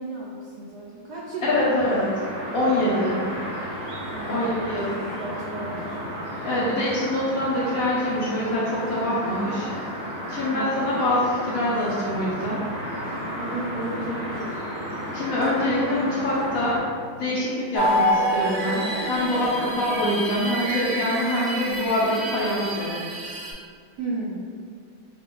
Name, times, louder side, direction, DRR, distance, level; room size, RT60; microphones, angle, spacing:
voice 1, 0.0-1.9 4.0-6.0 10.3-10.9 13.3-14.5 23.4-23.5 24.0-24.5, right 2 dB, 85° right, -5 dB, 0.8 m, -34 dB
voice 2, 1.4-2.0 2.5-3.2 4.3-4.9 6.4-9.7 10.3-12.6 15.1-16.8 17.2-18.8 19.1-22.9, left 1 dB, 70° left, -7 dB, 0.8 m, -24 dB
sound 1, 1.5-16.8, equal, 45° right, 0.9 m, -33 dB
sound 2, 17.7-23.5, equal, 65° right, 1.2 m, -27 dB
4.8 x 2.1 x 3.8 m, 2.1 s
omnidirectional pair, 2.3 m